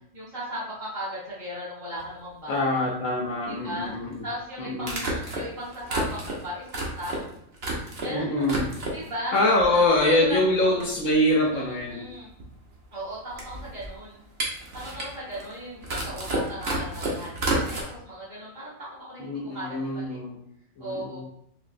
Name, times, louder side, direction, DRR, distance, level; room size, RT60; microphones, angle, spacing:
voice 1, 0.1-2.8 3.5-3.9 4.2-7.3 8.0-8.4 8.9-9.4 9.7-10.9 11.5-12.3 12.9-14.2 14.7-20.2 20.8-21.2, equal, 70° right, -8 dB, 1.8 m, -37 dB
sound 1, 2.0-2.1 3.9-4.0 4.8-8.1 8.4-9.1 9.6-10.2 10.5-10.6 10.8-17.8, right 2 dB, 50° right, 1.0 m, -31 dB
voice 2, 2.5-4.2 4.6-5.0 8.1-8.6 9.3-12.1 19.2-20.4 20.8-21.2, left 1 dB, 75° left, -1 dB, 1.0 m, -24 dB
4.1 x 3.0 x 2.5 m, 0.69 s
omnidirectional pair, 1.4 m